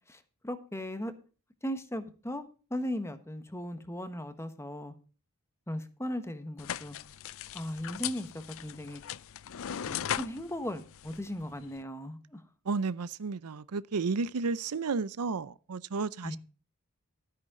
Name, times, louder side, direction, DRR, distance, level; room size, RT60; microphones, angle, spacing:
voice 1, 0.1-1.1 1.6-2.4 2.7-4.9 5.7-7.0 7.5-9.0 9.8-12.4 16.2-16.4, equal, 10° left, 1.3 m, -37 dB
sound 1, 6.6-11.8, left 10 dB, 65° left, 0.5 m, -39 dB
voice 2, 12.7-16.4, right 4 dB, 85° right, 0.6 m, -32 dB
13.0 x 9.5 x 3.7 m
head